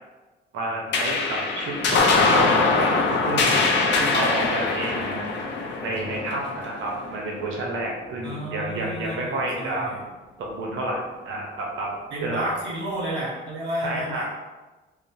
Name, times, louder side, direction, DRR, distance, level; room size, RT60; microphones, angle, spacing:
voice 1, 0.5-3.0 3.3-3.6 3.9-5.2 5.8-9.9 10.4-11.9 12.2-12.6 13.8-14.2, right 1 dB, 80° right, -1 dB, 0.7 m, -29 dB
sound 1, 0.9-7.7, left 3 dB, 65° left, 0.5 m, -23 dB
voice 2, 8.2-10.0 12.1-14.2, right 1 dB, 60° right, -6 dB, 1.3 m, -32 dB
3.1 x 2.1 x 2.7 m, 1.2 s
cardioid pair, 90°, 20 cm